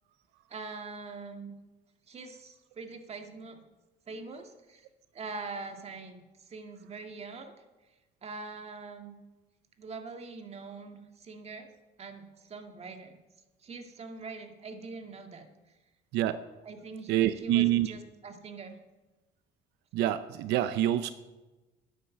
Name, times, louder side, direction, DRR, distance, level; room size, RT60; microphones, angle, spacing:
voice 1, 0.5-1.5 2.1-3.6 4.1-4.9 5.1-7.6 8.2-9.1 9.8-11.7 12.0-13.2 13.6-15.5 16.6-18.8, right 4 dB, 40° right, 6 dB, 1.9 m, -43 dB
voice 2, 16.1-16.4 17.1-17.9 19.9-21.1, right 13 dB, 90° right, 12 dB, 0.6 m, -26 dB
10.5 x 10.0 x 7.7 m, 1.1 s
cardioid pair, 110°, 17 cm